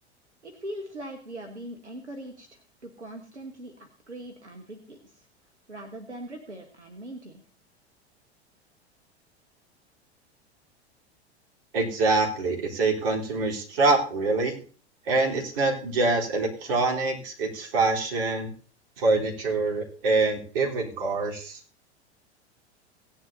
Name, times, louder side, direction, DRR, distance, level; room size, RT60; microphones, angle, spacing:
voice 1, 0.4-5.3 5.7-7.4, right 1 dB, 85° right, 3 dB, 1.5 m, -41 dB
voice 2, 11.7-14.6 15.1-18.5 19.0-21.6, right 3 dB, 55° right, -1 dB, 3.7 m, -25 dB
17.5 x 10.5 x 2.7 m, 0.40 s
figure-of-eight pair, 85°, 34 cm